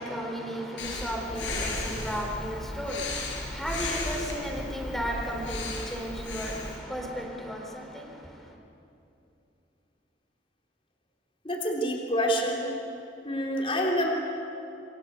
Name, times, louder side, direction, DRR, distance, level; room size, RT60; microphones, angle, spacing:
voice 1, 0.0-8.1, equal, ahead, 0 dB, 4.1 m, -34 dB
Breathing, 0.8-6.8, left 2 dB, 85° left, 7.9 m, -35 dB
voice 2, 11.4-12.7 13.2-14.1, equal, 30° left, -1 dB, 3.6 m, -27 dB
28.5 x 24.0 x 8.3 m, 2.8 s
head